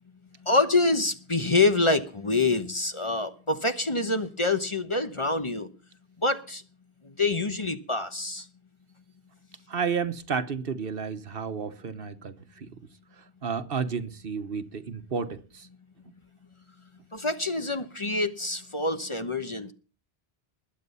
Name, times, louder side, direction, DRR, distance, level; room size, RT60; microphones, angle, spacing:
voice 1, 0.4-5.7 6.2-6.6 7.0-8.5 17.1-19.7, left 3 dB, 30° left, 1.1 m, -26 dB
voice 2, 9.7-12.3 12.6-12.7 13.4-15.7, right 6 dB, 65° right, 1.3 m, -31 dB
20.5 x 8.8 x 5.6 m
omnidirectional pair, 1.0 m